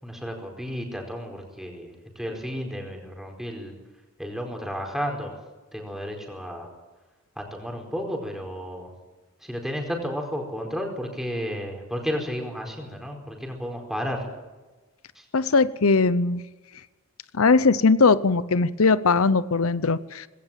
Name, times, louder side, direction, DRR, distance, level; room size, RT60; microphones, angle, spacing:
voice 1, 0.0-3.7 4.2-5.3 5.7-6.7 7.4-8.9 9.4-14.3 15.1-15.3, equal, ahead, 2 dB, 4.7 m, -32 dB
voice 2, 15.3-16.4 17.4-20.3, left 4 dB, 90° left, 16 dB, 0.8 m, -20 dB
20.0 x 17.5 x 9.1 m, 1.2 s
head